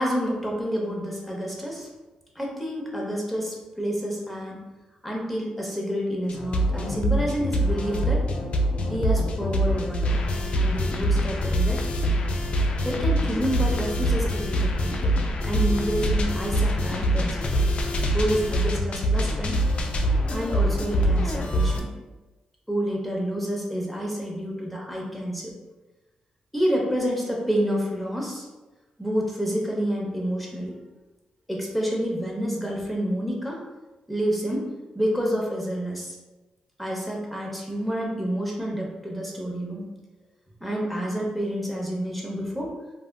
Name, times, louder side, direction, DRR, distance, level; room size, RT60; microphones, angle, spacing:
voice 1, 0.0-1.9 2.4-4.6 5.0-8.2 8.9-10.2 10.5-11.9 12.8-15.1 15.5-17.5 18.1-19.6 20.3-21.9 22.7-25.5 26.5-28.5 29.0-30.8 31.5-33.6 34.1-34.7 34.9-36.2 36.8-39.8 40.6-42.7, equal, 5° left, -2 dB, 0.8 m, -28 dB
sound 1, 6.3-21.8, equal, 55° left, 0.4 m, -24 dB
3.3 x 2.3 x 2.2 m, 1.1 s
cardioid pair, 80°, 2 cm